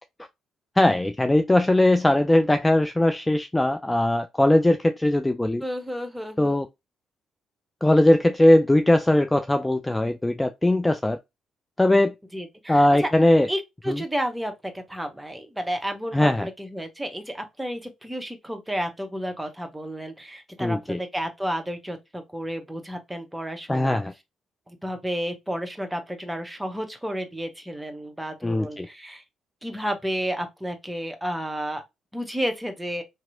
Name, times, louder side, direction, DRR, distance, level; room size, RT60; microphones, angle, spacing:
voice 1, 0.8-5.6 6.4-6.7 7.8-11.2 11.8-12.1 12.7-13.5 13.9-14.0 16.1-16.5 20.6-21.0 23.7-24.1 28.4-28.9, left 1 dB, 15° left, 0.3 m, -20 dB
voice 2, 5.6-6.6 12.3-13.1 13.5-24.0 24.7-29.2 29.6-31.8 32.1-33.0, equal, 10° right, 0.9 m, -31 dB
2.8 x 2.7 x 2.6 m
hypercardioid pair, 45°, 0 cm